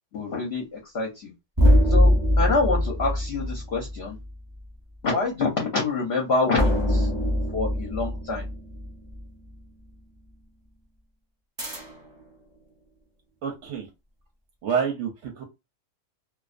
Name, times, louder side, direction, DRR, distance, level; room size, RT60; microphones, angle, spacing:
voice 1, 0.1-1.3 1.9-4.2 5.0-7.1 7.5-8.5, left 3 dB, 55° left, -1 dB, 0.8 m, -26 dB
sound 1, 1.6-4.3 6.6-9.2 11.6-12.2, equal, 20° right, 0.8 m, -23 dB
voice 2, 13.4-13.9 14.6-15.4, right 7 dB, 65° right, 2 dB, 0.8 m, -28 dB
2.3 x 2.2 x 2.4 m, 0.23 s
omnidirectional pair, 1.5 m